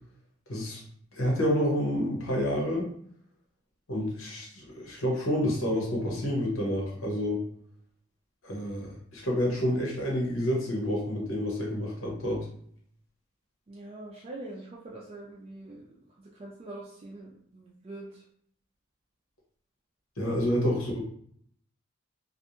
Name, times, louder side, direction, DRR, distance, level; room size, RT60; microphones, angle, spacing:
voice 1, 0.5-0.8 1.1-2.9 3.9-7.4 8.4-12.4 20.2-21.0, equal, 85° left, -2 dB, 0.9 m, -29 dB
voice 2, 13.7-18.2, right 2 dB, 30° right, -4 dB, 0.3 m, -44 dB
2.5 x 2.2 x 2.9 m, 0.63 s
head